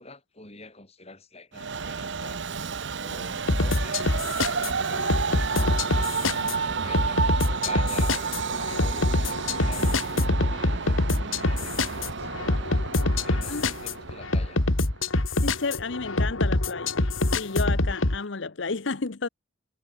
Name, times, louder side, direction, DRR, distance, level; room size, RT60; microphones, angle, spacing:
voice 1, 0.0-2.4 3.0-8.2 8.6-12.8 13.2-14.7, left 2 dB, 30° left, 7.8 m, -47 dB
Train, 1.5-15.0, right 5 dB, 60° right, 0.8 m, -31 dB
sound 1, 3.5-18.2, left 2 dB, 85° left, 2.4 m, -25 dB
voice 2, 15.4-17.0 17.3-19.3, left 4 dB, 65° left, 0.9 m, -31 dB
head